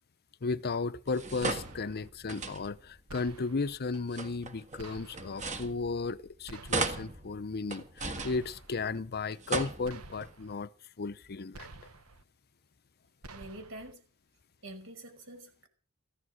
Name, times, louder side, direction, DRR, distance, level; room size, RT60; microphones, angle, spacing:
voice 1, 0.4-10.7 11.0-11.7, left 4 dB, 45° left, 0.7 m, -35 dB
sound 1, 1.1-3.0 3.9-6.3 6.7-9.0 9.3-10.3, right 3 dB, 35° right, 1.7 m, -37 dB
sound 2, 1.4-2.1 3.1-3.8 4.8-5.5 6.5-7.2 8.2-8.9 9.8-10.5 11.5-12.2 13.2-13.9, right 3 dB, 90° right, 1.4 m, -49 dB
voice 2, 13.3-14.0 14.6-15.7, right 1 dB, 65° right, 5.5 m, -46 dB
15.5 x 13.5 x 6.3 m
head